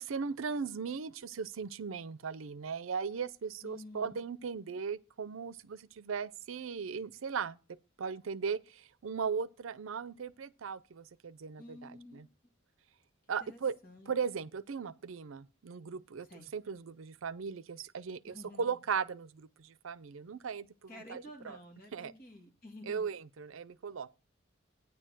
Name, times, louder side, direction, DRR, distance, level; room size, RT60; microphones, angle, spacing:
voice 1, 0.0-12.3 13.3-13.7 14.1-21.6 21.9-22.1 22.9-24.1, right 6 dB, 80° right, 0.5 m, -38 dB
voice 2, 3.6-4.3 11.6-12.3 13.4-14.2 16.2-16.5 18.3-18.8 20.9-23.1, left 1 dB, 45° left, 2.6 m, -51 dB
9.6 x 4.5 x 7.4 m
head